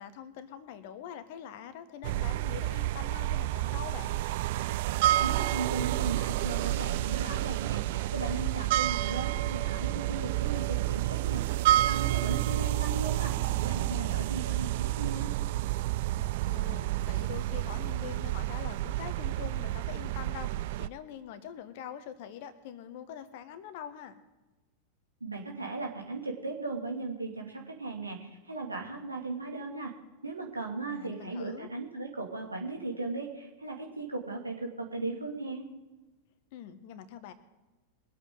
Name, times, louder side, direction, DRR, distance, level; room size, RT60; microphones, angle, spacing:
voice 1, 0.0-4.2 13.3-14.1 16.1-24.2 30.9-31.7 36.5-37.3, left 9 dB, 50° left, 11 dB, 1.4 m, -44 dB
sound 1, 2.0-20.9, right 16 dB, 50° right, 0.3 m, -30 dB
voice 2, 5.2-11.4 11.8-15.3 25.2-29.9 30.2-35.7, right 3 dB, 80° right, 0 dB, 2.5 m, -37 dB
23.0 x 8.4 x 3.9 m, 1.1 s
figure-of-eight pair, 90°, 0 cm